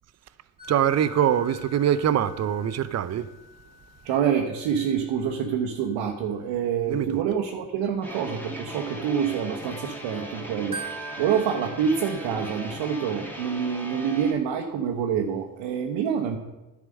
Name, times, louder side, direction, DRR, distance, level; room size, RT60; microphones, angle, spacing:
sound 1, 0.6-10.0 10.4-13.2, right 2 dB, 10° right, 1.9 m, -45 dB
voice 1, 0.7-3.3 6.9-7.2, right 10 dB, 35° right, 0.6 m, -23 dB
voice 2, 4.0-10.8 11.2-16.4, right 7 dB, 70° right, 1.1 m, -26 dB
sound 2, 8.0-14.3, equal, 5° left, 2.5 m, -38 dB
11.0 x 5.0 x 6.4 m
hypercardioid pair, 60°, 46 cm